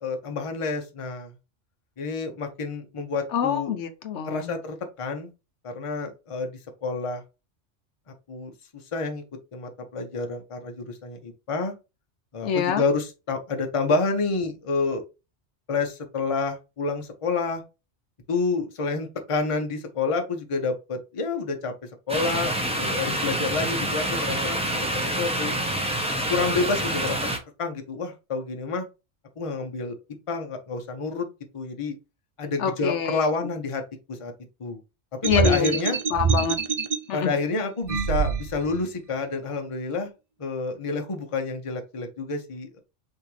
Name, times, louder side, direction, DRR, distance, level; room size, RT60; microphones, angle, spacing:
voice 1, 0.0-1.3 2.0-3.7 4.2-5.3 5.6-6.5 6.8-7.2 8.3-8.5 8.9-9.2 9.5-11.7 12.3-15.0 15.7-17.6 18.3-21.7 22.1-25.5 26.3-27.3 27.6-28.9 29.4-30.0 30.3-31.3 31.5-31.9 32.4-33.8 34.1-34.3 34.6-34.8 35.4-36.0 37.1-40.1 40.4-42.8, left 4 dB, 30° left, 0.8 m, -28 dB
voice 2, 3.3-4.5 12.4-12.8 32.6-33.2 35.2-35.8 36.1-36.6 37.1-37.3, left 7 dB, 70° left, 0.9 m, -25 dB
sound 1, 22.1-27.4, right 1 dB, 5° right, 0.8 m, -27 dB
sound 2, 35.2-37.0 37.8-38.8, right 5 dB, 50° right, 0.4 m, -25 dB
5.8 x 2.9 x 3.1 m
omnidirectional pair, 1.3 m